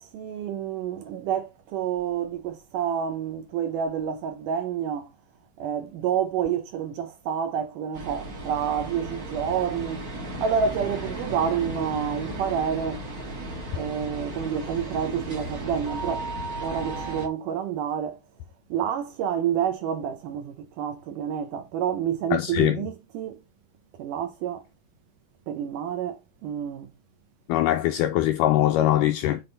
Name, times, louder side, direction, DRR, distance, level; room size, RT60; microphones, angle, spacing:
voice 1, 0.0-5.1 5.6-10.1 10.4-13.0 13.8-16.3 16.6-18.2 18.7-23.4 24.0-24.6 25.5-26.9, right 8 dB, 75° right, 2.0 m, -28 dB
sound 1, 7.9-17.3, right 1 dB, 45° right, 1.1 m, -35 dB
voice 2, 22.3-22.8 27.5-29.4, left 13 dB, 85° left, 1.9 m, -22 dB
7.6 x 3.5 x 3.8 m
omnidirectional pair, 4.3 m